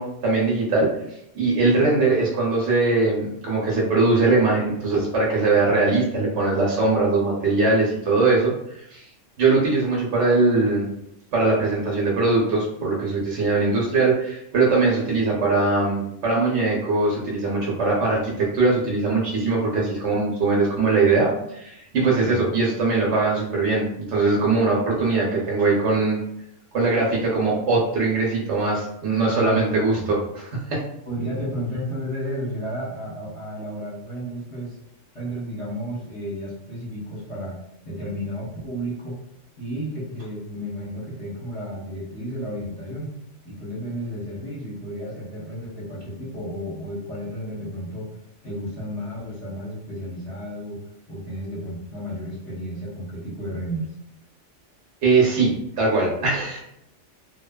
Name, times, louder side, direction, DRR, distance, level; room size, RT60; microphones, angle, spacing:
voice 1, 0.0-9.1 9.4-10.9 11.3-26.2 26.7-30.8 55.0-56.6, right 3 dB, 70° right, -4 dB, 0.9 m, -21 dB
voice 2, 29.3-30.1 31.1-34.8 35.1-37.6 37.8-39.2 39.6-43.1 43.4-48.1 48.4-50.8 51.1-53.9, equal, 30° left, -9 dB, 0.8 m, -32 dB
2.6 x 2.2 x 2.2 m, 0.77 s
omnidirectional pair, 1.3 m